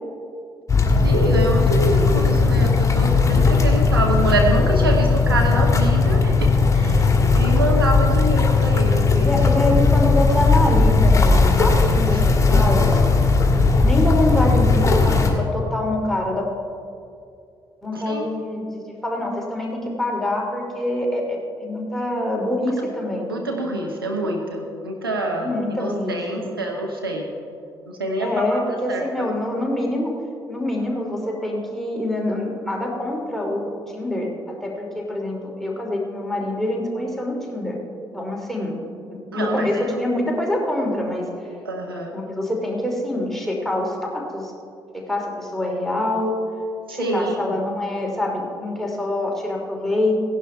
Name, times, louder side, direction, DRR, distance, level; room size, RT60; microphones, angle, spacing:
sound 1, 0.7-15.3, left 4 dB, 25° left, 1.9 m, -17 dB
voice 1, 1.0-7.1 7.3-9.7 12.1-12.2 17.9-18.2 23.3-27.2 28.0-29.3 39.3-40.0 41.6-42.1 46.9-47.6, right 2 dB, 85° right, 0 dB, 0.9 m, -26 dB
voice 2, 9.2-13.2 13.8-16.5 17.8-23.3 24.2-24.3 25.4-26.6 28.2-30.2 30.5-33.6 33.9-37.8 38.1-38.8 39.1-41.3 42.1-44.5 44.9-46.4 46.9-50.2, left 1 dB, 5° left, -1 dB, 2.9 m, -25 dB
17.0 x 11.0 x 3.4 m, 2.5 s
figure-of-eight pair, 40°, 12 cm